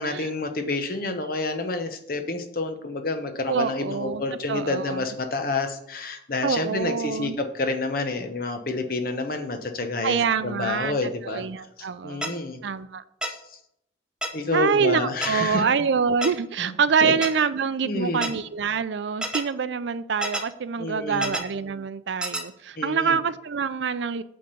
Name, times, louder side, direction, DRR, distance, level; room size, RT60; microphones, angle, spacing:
voice 1, 0.0-10.2 10.4-11.4 11.8-12.6 13.2-13.4 14.3-15.6 16.6-16.7 17.0-17.5 17.8-18.3 20.8-21.3 22.8-23.2, left 3 dB, 50° left, 0.9 m, -29 dB
voice 2, 3.5-4.2 4.5-5.1 6.4-7.4 10.0-12.3 12.6-13.0 14.5-24.2, right 6 dB, 70° right, 0.4 m, -26 dB
sound 1, 12.2-12.3 13.2-13.3 14.2-14.3 15.2-15.3 16.2-16.3 17.2-17.3 18.2-18.3 19.2-19.4 20.2-20.4 21.2-21.4 22.2-22.4, right 1 dB, 5° right, 0.7 m, -27 dB
8.6 x 3.6 x 6.7 m
head